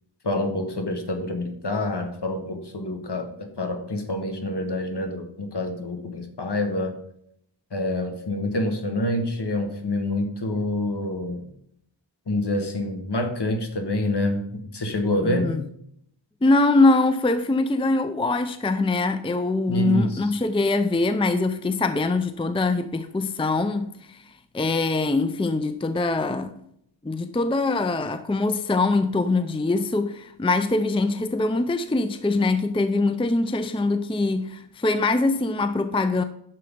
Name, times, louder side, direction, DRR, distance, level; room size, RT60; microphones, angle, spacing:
voice 1, 0.2-6.9 7.7-11.5 12.3-14.4 14.7-15.6 19.7-20.2, left 1 dB, 55° left, 1.7 m, -27 dB
voice 2, 15.2-15.6 16.4-26.5 27.0-36.2, left 2 dB, 10° left, 0.5 m, -23 dB
10.5 x 6.7 x 3.9 m
wide cardioid pair, 60°, 48 cm